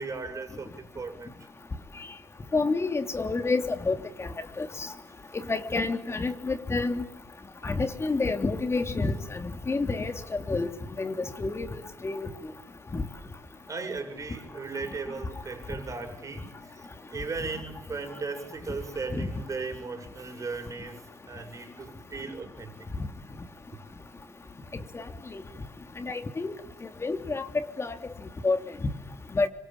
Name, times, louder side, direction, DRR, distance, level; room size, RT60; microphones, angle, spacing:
voice 1, 0.0-1.5 5.1-5.2 13.7-22.9 23.7-23.8, right 4 dB, 30° right, 6 dB, 7.1 m, -37 dB
voice 2, 2.5-4.3 4.6-4.7 5.5-7.0 7.6-10.7 11.0-12.3 12.9-13.0 19.2-19.3 24.9-25.0 25.3-25.4 26.0-26.5 27.0-27.9 28.4-28.6 29.3-29.5, left 3 dB, 25° left, 7 dB, 3.2 m, -28 dB
26.5 x 24.5 x 9.0 m, 0.74 s
hypercardioid pair, 60°, 10 cm